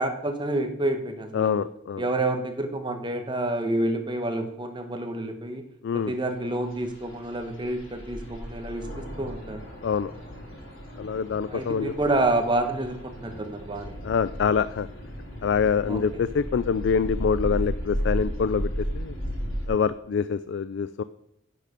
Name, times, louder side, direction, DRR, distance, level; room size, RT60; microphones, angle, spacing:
voice 1, 0.0-1.6 2.0-5.6 5.9-9.7 11.5-13.9 15.9-16.0, right 2 dB, 25° right, 5 dB, 1.2 m, -28 dB
voice 2, 1.3-2.1 5.8-6.1 9.8-10.1 11.0-11.9 14.0-14.9 15.4-19.2 19.7-21.0, left 6 dB, 60° left, 14 dB, 0.3 m, -25 dB
sound 1, 6.3-19.7, equal, 80° left, 3.8 m, -35 dB
10.5 x 6.7 x 5.1 m, 0.82 s
head